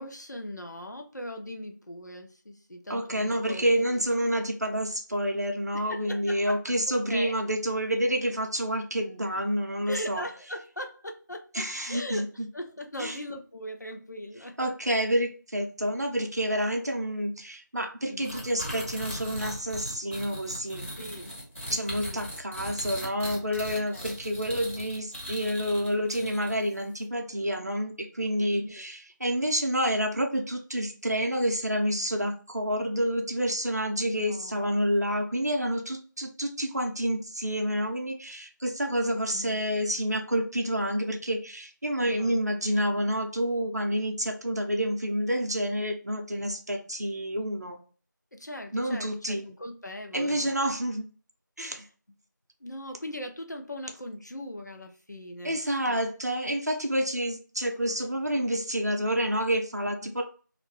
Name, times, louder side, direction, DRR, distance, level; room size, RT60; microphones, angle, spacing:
voice 1, 0.0-4.0 5.7-7.3 9.9-14.7 18.1-18.3 20.9-21.3 21.7-22.2 23.9-24.5 28.5-28.8 34.0-34.7 39.3-39.9 42.0-42.4 46.3-46.5 48.3-50.6 52.6-55.6 55.9-56.1 60.0-60.1, left 1 dB, 60° left, 4 dB, 0.6 m, -40 dB
voice 2, 2.9-10.2 11.5-12.5 13.0-13.2 14.6-20.9 21.7-47.8 48.7-49.5 50.1-51.1 51.6-51.8 55.4-60.2, equal, 55° right, 2 dB, 0.6 m, -28 dB
sound 1, 18.2-26.7, equal, 40° left, 1.1 m, -39 dB
2.6 x 2.1 x 2.9 m, 0.38 s
figure-of-eight pair, 175°, 11 cm